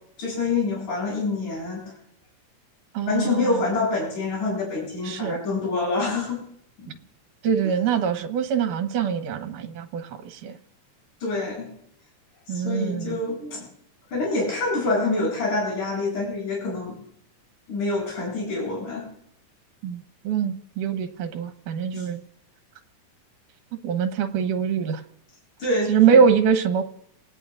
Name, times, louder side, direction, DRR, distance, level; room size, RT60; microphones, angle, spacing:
voice 1, 0.2-1.9 3.1-6.4 6.8-7.0 11.2-11.7 12.5-13.7 14.1-17.0 17.7-19.1 21.9-22.1 25.6-26.2, left 3 dB, 70° left, -4 dB, 9.7 m, -26 dB
voice 2, 2.9-3.6 5.0-5.4 7.4-10.6 12.5-13.2 19.8-22.2 23.8-25.0 25.9-26.8, right 7 dB, 75° right, 5 dB, 2.7 m, -23 dB
29.5 x 18.5 x 2.5 m, 0.73 s
omnidirectional pair, 3.8 m